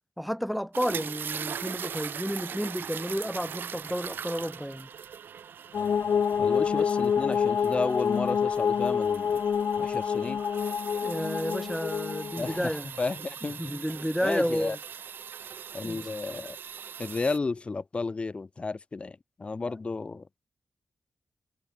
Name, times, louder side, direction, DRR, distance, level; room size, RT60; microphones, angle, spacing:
voice 1, 0.2-4.9 11.0-12.9 13.6-14.8 15.8-16.1, equal, ahead, 3.4 m, -31 dB
sound 1, 0.7-17.4, right 8 dB, 90° right, 1.5 m, -41 dB
sound 2, 5.7-12.6, left 7 dB, 75° left, 1.2 m, -27 dB
voice 2, 6.4-9.4 9.8-10.4 12.4-13.9 14.2-14.8 15.7-16.6 17.0-20.3, left 3 dB, 35° left, 1.4 m, -32 dB
wide cardioid pair, 115°, 3 cm